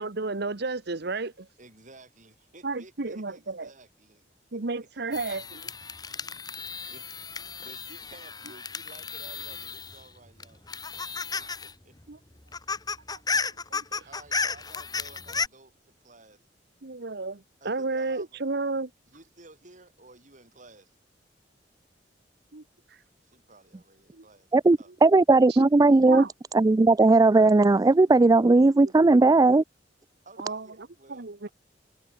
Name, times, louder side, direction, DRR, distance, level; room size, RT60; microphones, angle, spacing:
voice 1, 0.0-1.5 2.6-3.7 4.5-5.4 11.3-11.5 12.1-12.2 13.1-13.2 13.7-14.1 16.8-18.9 22.5-22.6 22.9-23.0 24.1-24.2 25.5-25.7 26.1-26.3 28.6-28.9 29.2-29.4 30.4-30.7 31.1-31.5, right 3 dB, 60° right, 1.2 m, -32 dB
voice 2, 1.6-4.3 4.5-4.6 6.9-7.1 7.6-10.7 11.3-12.0 14.1-15.8 16.0-16.4 17.6-18.4 19.1-20.9 23.2-24.5 24.8-24.9 30.2-31.5, right 2 dB, 45° right, 7.3 m, -53 dB
sound 1, 5.1-10.1 10.4-11.7 12.0-12.1 12.4-15.5, left 4 dB, 20° left, 1.3 m, -33 dB
voice 3, 24.5-26.2 26.5-29.6, right 3 dB, 20° right, 0.3 m, -18 dB
head